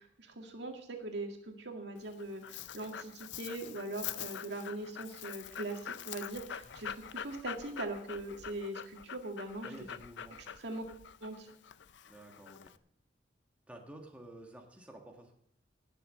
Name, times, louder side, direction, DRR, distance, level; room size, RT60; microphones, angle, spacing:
voice 1, 0.0-9.8 10.6-10.8 11.2-11.5, right 2 dB, 70° right, 3 dB, 2.1 m, -41 dB
Dog, 2.0-12.8, left 9 dB, 80° left, 0.5 m, -45 dB
voice 2, 9.6-10.5 12.1-12.7 13.7-15.4, right 1 dB, 10° right, 1 dB, 1.6 m, -51 dB
18.0 x 6.8 x 6.6 m, 0.72 s
head